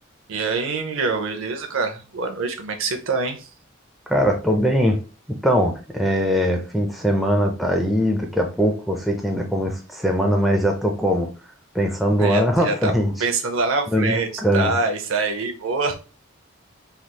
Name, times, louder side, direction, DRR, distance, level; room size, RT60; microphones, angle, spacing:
voice 1, 0.3-3.5 12.2-12.9 13.2-15.9, right 3 dB, 80° right, 5 dB, 0.6 m, -25 dB
voice 2, 4.1-5.0 5.4-11.3 11.7-13.1 13.9-14.7, equal, ahead, 1 dB, 0.4 m, -21 dB
3.3 x 2.9 x 2.2 m, 0.33 s
head